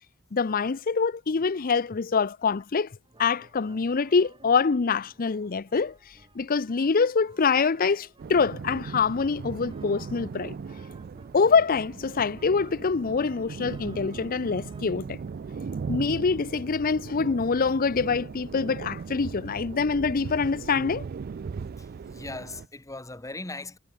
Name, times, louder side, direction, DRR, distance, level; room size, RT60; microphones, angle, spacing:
voice 1, 0.3-2.9 3.2-10.6 11.3-15.2 15.9-21.0, left 5 dB, 40° left, 0.5 m, -25 dB
sound 1, 3.0-18.1 19.1-19.2 21.1-21.2 21.4-21.6 21.9-22.0 22.7-22.8, right 2 dB, 20° right, 2.8 m, -56 dB
sound 2, 8.2-22.7, right 5 dB, 45° right, 0.3 m, -38 dB
voice 2, 21.8-23.8, left 2 dB, 15° left, 1.7 m, -39 dB
head